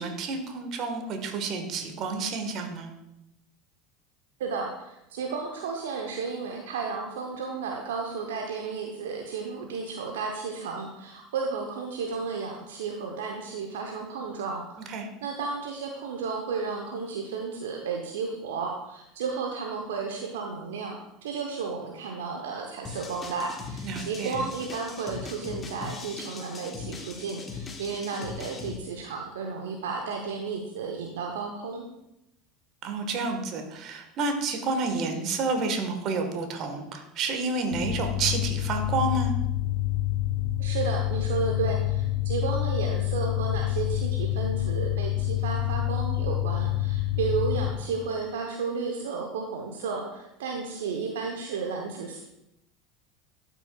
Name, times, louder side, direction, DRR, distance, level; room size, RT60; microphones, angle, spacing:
voice 1, 0.0-2.9 14.9-15.1 23.8-24.4 32.8-39.3, right 3 dB, 50° right, 5 dB, 1.4 m, -30 dB
voice 2, 4.4-14.8 15.2-31.9 40.6-52.2, right 5 dB, 70° right, 1 dB, 0.8 m, -33 dB
sound 1, 22.8-28.8, left 5 dB, 25° left, 1.1 m, -40 dB
sound 2, 37.7-47.7, left 15 dB, 70° left, 0.6 m, -27 dB
12.0 x 6.1 x 2.3 m, 0.86 s
figure-of-eight pair, 75°, 0 cm